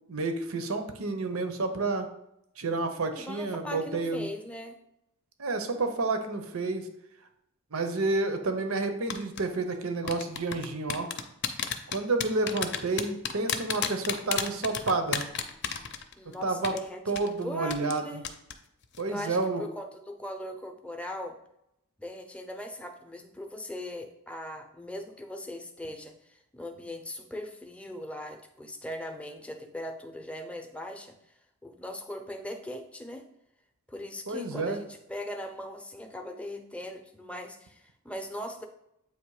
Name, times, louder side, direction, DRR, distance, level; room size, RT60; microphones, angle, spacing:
voice 1, 0.1-2.1 2.6-4.3 5.4-6.9 7.7-11.1 11.9-15.2 16.4-16.7 17.1-18.2 19.0-19.6 34.3-34.8, right 3 dB, 90° right, 7 dB, 0.9 m, -30 dB
voice 2, 3.2-4.8 16.2-18.2 19.1-21.4 22.0-31.1 31.6-33.2 33.9-38.6, left 1 dB, 5° left, 5 dB, 0.6 m, -40 dB
sound 1, 9.1-9.4 10.1-16.3 16.6-16.8 17.2-17.3 17.7-18.0 18.2-18.5 18.8-19.0, left 8 dB, 55° left, 0.6 m, -31 dB
8.0 x 3.0 x 4.8 m, 0.80 s
head